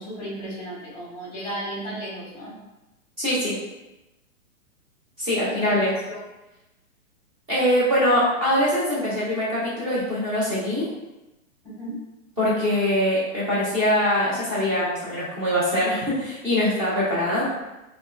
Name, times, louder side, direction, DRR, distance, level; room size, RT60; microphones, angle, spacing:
voice 1, 0.0-2.6 5.4-6.2 11.6-12.0, right 1 dB, 10° left, -6 dB, 1.1 m, -35 dB
voice 2, 3.2-3.6 5.2-5.9 7.5-10.8 12.4-17.5, left 1 dB, 15° right, -9 dB, 0.6 m, -23 dB
3.2 x 2.4 x 2.3 m, 0.98 s
hypercardioid pair, 145°, 41 cm